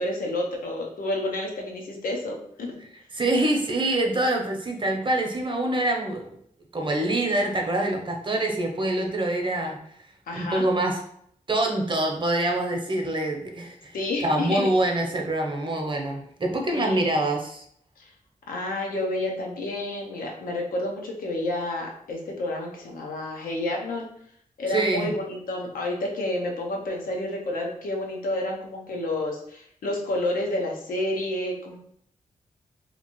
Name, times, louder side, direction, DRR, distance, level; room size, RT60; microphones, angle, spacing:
voice 1, 0.0-2.8 10.3-10.6 13.9-14.7 16.7-17.1 18.0-18.1 18.5-24.1 24.6-31.8, left 1 dB, 85° left, 0 dB, 0.7 m, -30 dB
voice 2, 3.1-6.3 6.7-9.8 10.4-11.0 11.5-17.6 24.7-25.1, right 1 dB, 35° right, 2 dB, 0.8 m, -25 dB
2.9 x 2.5 x 3.0 m, 0.67 s
cardioid pair, 50°, 14 cm